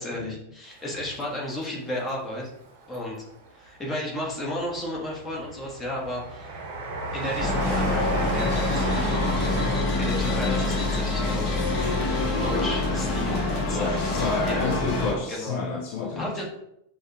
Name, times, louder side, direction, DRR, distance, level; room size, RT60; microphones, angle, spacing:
voice 1, 0.0-2.5 2.9-3.2 3.5-6.5 7.1-8.9 10.0-11.6 12.4-13.4 13.7-14.6 15.3-15.6 16.2-16.4, left 1 dB, 15° left, -3 dB, 1.3 m, -33 dB
Train, 0.8-2.0 2.5-3.4 4.0-12.7 13.0-13.1, right 3 dB, 45° right, 0.8 m, -35 dB
sound 1, 7.4-15.1, left 2 dB, 30° left, 1.1 m, -25 dB
voice 2, 10.2-10.7 13.7-16.4, left 4 dB, 50° left, 1 dB, 0.5 m, -31 dB
6.2 x 2.3 x 2.9 m, 0.77 s
figure-of-eight pair, 90°, 0 cm